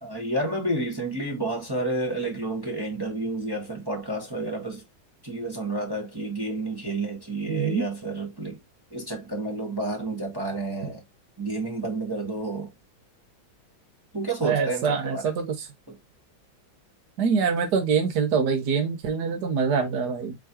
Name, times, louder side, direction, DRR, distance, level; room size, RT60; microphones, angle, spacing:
voice 1, 0.0-4.8 5.2-8.6 8.9-11.0 11.4-12.7 14.1-15.2, right 2 dB, 15° right, 1.3 m, -30 dB
voice 2, 7.5-7.8 14.4-15.7 17.2-20.3, right 6 dB, 60° right, 1.4 m, -25 dB
5.0 x 3.7 x 2.8 m
omnidirectional pair, 2.2 m